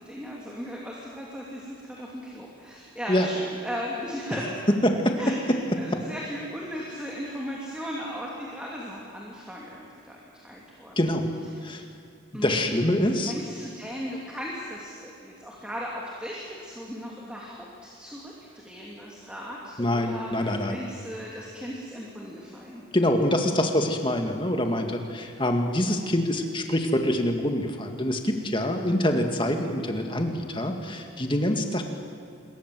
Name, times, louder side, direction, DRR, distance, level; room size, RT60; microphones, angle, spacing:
voice 1, 0.0-4.5 5.2-11.0 12.3-12.9 13.3-22.8, equal, 5° right, -4 dB, 2.7 m, -37 dB
voice 2, 4.8-5.6 5.9-6.0 11.0-11.3 11.6-11.8 12.3-13.3 19.8-20.8 22.9-31.8, left 1 dB, 25° left, 4 dB, 2.1 m, -25 dB
27.5 x 22.0 x 7.7 m, 2.4 s
head